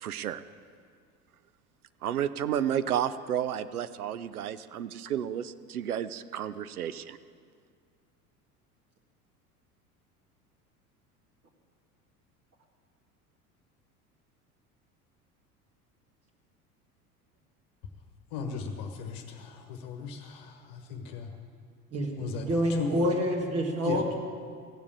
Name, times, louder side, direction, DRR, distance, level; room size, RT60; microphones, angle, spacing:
voice 1, 0.0-0.4 2.0-7.2, right 10 dB, 75° right, 14 dB, 0.6 m, -31 dB
voice 2, 18.3-21.3 22.2-23.0 23.8-24.0, left 5 dB, 45° left, 4 dB, 1.3 m, -37 dB
voice 3, 21.9-24.1, equal, 30° right, 0 dB, 1.9 m, -28 dB
16.0 x 7.1 x 8.5 m, 2.1 s
figure-of-eight pair, 75°, 45 cm